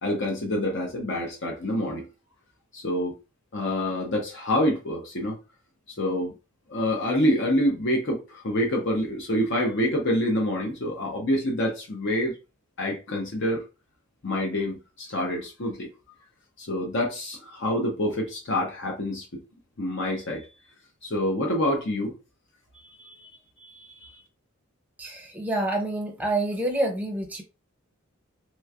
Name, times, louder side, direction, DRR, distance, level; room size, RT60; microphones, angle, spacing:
voice 1, 0.0-2.1 2.7-3.1 3.5-5.4 6.0-6.3 6.7-12.4 12.8-13.6 14.2-15.9 16.6-19.3 19.8-20.5 21.0-22.1 23.0-23.3 23.6-24.1, left 1 dB, 55° left, 0.7 m, -27 dB
voice 2, 25.0-27.4, right 1 dB, 5° right, 0.7 m, -27 dB
3.2 x 3.1 x 2.4 m
head